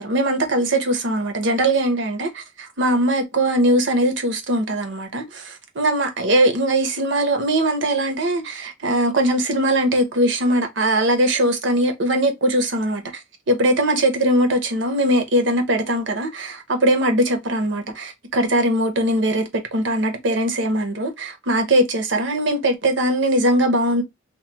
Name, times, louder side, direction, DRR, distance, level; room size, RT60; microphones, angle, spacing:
voice 1, 0.0-13.0 13.5-24.0, right 1 dB, 70° right, 0.8 m, -20 dB
3.0 x 2.2 x 3.3 m
head